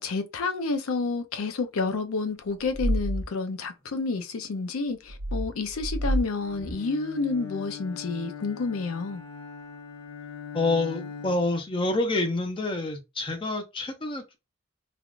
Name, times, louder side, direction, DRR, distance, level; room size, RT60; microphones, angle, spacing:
voice 1, 0.0-9.2, left 4 dB, 90° left, 0.5 m, -29 dB
sound 1, 2.6-3.3 5.1-6.3 6.6-6.7, right 1 dB, 70° right, 1.2 m, -28 dB
Bowed string instrument, 6.4-11.7, left 5 dB, 65° left, 0.9 m, -41 dB
voice 2, 10.5-14.4, left 2 dB, 25° left, 0.5 m, -27 dB
3.4 x 2.3 x 2.4 m
head